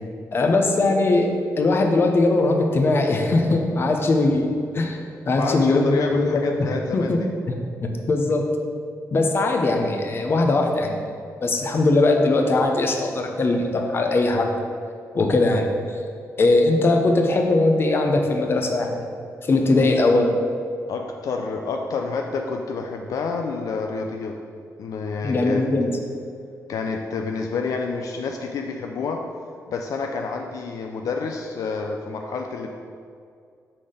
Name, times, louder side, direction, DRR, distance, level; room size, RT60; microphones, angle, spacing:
voice 1, 0.3-5.0 5.3-7.2 7.5-8.4 9.1-11.1 11.4-14.5 15.1-16.0 16.4-19.1 19.4-20.3 25.2-25.9, left 2 dB, 40° left, 3 dB, 0.7 m, -20 dB
voice 2, 5.3-7.3 19.7-19.9 20.9-24.4 24.8-25.6 26.7-29.2 29.7-32.8, left 4 dB, 70° left, 2 dB, 0.4 m, -28 dB
5.7 x 4.1 x 5.0 m, 2.3 s
wide cardioid pair, 125°, 6 cm